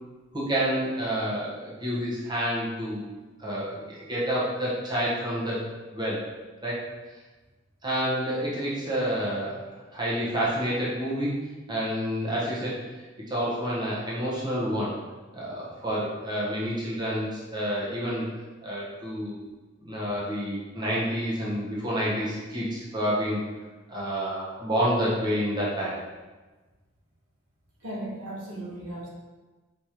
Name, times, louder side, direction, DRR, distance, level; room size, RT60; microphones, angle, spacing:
voice 1, 0.3-3.1 3.4-5.6 5.9-6.3 6.6-6.8 7.8-9.6 9.9-11.3 11.7-12.8 13.3-14.9 15.3-18.2 18.6-19.4 19.8-23.4 23.9-26.0, equal, 20° right, -7 dB, 1.0 m, -28 dB
voice 2, 27.8-29.1, right 1 dB, 85° right, -4 dB, 1.1 m, -36 dB
4.8 x 3.2 x 2.9 m, 1.2 s
head